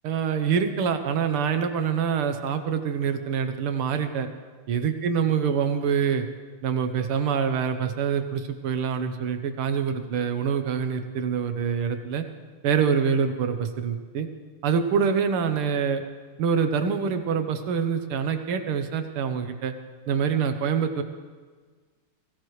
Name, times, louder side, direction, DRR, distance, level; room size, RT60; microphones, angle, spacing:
voice 1, 0.0-4.3 4.7-6.3 6.6-12.3 12.6-14.3 14.6-16.0 16.4-19.7 20.1-21.0, right 6 dB, 80° right, 7 dB, 1.9 m, -25 dB
21.0 x 16.5 x 3.2 m, 1.5 s
omnidirectional pair, 2.4 m